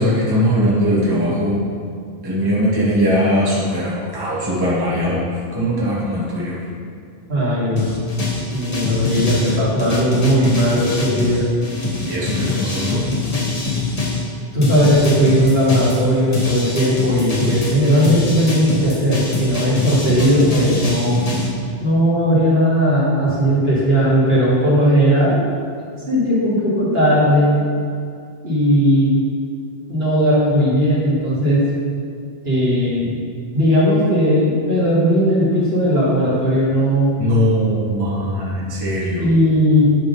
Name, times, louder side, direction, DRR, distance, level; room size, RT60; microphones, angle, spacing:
voice 1, 0.0-1.6 2.2-6.6 12.0-13.0 37.2-39.3, equal, 20° right, -7 dB, 1.4 m, -20 dB
voice 2, 7.3-8.0 8.5-11.4 14.5-21.2 21.8-25.4 26.1-27.5 28.4-29.1 29.9-31.6 32.4-33.1 33.5-37.1 39.2-39.8, equal, 60° right, -9 dB, 2.5 m, -17 dB
sound 1, 7.8-14.2 14.6-21.5, left 3 dB, 35° left, 1.3 m, -23 dB
10.0 x 3.7 x 5.4 m, 2.3 s
omnidirectional pair, 1.2 m